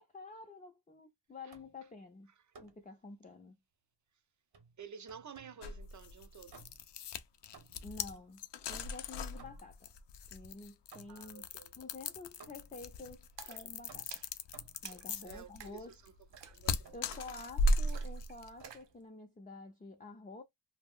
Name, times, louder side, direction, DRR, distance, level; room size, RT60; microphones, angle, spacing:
voice 1, 0.0-2.3 2.6-3.6 7.8-8.4 8.7-9.9 10.3-11.5 11.8-14.1 14.8-16.0 16.9-20.4, left 3 dB, 20° left, 0.5 m, -50 dB
sound 1, 1.5-1.9 2.5-2.9 4.5-5.7 6.5-7.0 7.5-8.0 8.7-9.9 10.9-11.4 12.4-12.9 13.9-14.9 16.3-16.5 16.8-17.5 18.6-18.9, right 5 dB, 60° right, 0.9 m, -58 dB
voice 2, 4.8-6.6 11.1-11.7 15.2-16.1 16.5-16.9, right 6 dB, 45° right, 0.5 m, -51 dB
sound 2, 5.6-18.6, left 1 dB, 75° left, 0.5 m, -37 dB
Splash splatter, 13.4-18.9, right 8 dB, 90° right, 0.6 m, -55 dB
2.3 x 2.0 x 3.5 m
cardioid pair, 65°, 42 cm